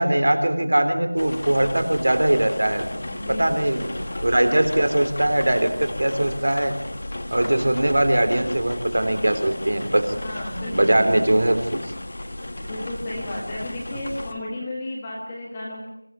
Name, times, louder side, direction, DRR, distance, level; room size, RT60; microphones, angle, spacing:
voice 1, 0.0-2.9 3.3-3.9 4.2-6.8 7.3-10.0 10.7-11.8, right 1 dB, 40° right, 8 dB, 3.4 m, -21 dB
sound 1, 1.2-14.3, left 1 dB, 30° left, 1.8 m, -34 dB
voice 2, 3.0-4.0 10.2-11.3 12.6-15.9, left 1 dB, 5° left, -4 dB, 1.7 m, -33 dB
25.0 x 17.0 x 9.6 m, 0.82 s
figure-of-eight pair, 180°, 0 cm